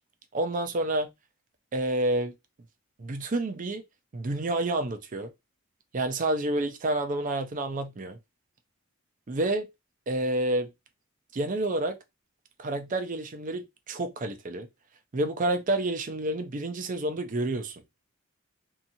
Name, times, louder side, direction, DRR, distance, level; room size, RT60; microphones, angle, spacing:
voice 1, 0.3-1.1 1.7-2.3 3.0-3.8 4.1-5.3 5.9-8.2 9.3-9.7 10.1-10.7 11.3-12.0 12.6-14.7 15.1-17.8, right 2 dB, 40° right, 0.5 m, -29 dB
2.8 x 2.4 x 2.6 m
head